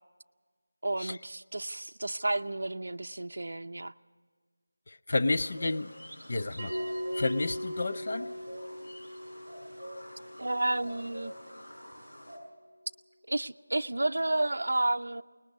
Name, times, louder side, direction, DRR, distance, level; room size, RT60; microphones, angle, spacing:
voice 1, 0.8-3.9 10.4-11.3 13.3-15.2, right 2 dB, 60° right, 0.6 m, -31 dB
voice 2, 4.9-5.9 6.3-6.7 7.2-8.3, left 2 dB, 35° left, 0.5 m, -30 dB
sound 1, 5.4-12.4, equal, 60° left, 7.4 m, -47 dB
Bell, 6.6-11.6, equal, 10° right, 5.9 m, -39 dB
21.0 x 20.0 x 6.4 m
figure-of-eight pair, 180°, 0 cm